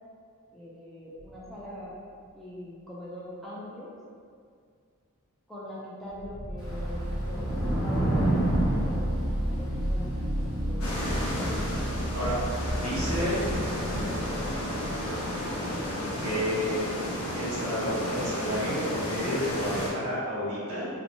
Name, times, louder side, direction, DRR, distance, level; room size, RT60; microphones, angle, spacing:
voice 1, 0.5-1.9 2.3-3.9 5.5-9.1 9.4-10.9 11.4-11.8, left 1 dB, ahead, -9 dB, 0.3 m, -42 dB
sound 1, 1.2-1.7 6.1-16.3, equal, 55° right, 0.6 m, -32 dB
Thunder / Rain, 6.6-15.0, right 1 dB, 15° left, 0.8 m, -32 dB
sound 2, 10.8-19.9, left 1 dB, 70° left, 0.6 m, -32 dB
voice 2, 12.7-13.5 16.2-16.8 17.3-20.9, equal, 70° right, -9 dB, 1.1 m, -31 dB
2.9 x 2.1 x 2.6 m, 2.2 s
head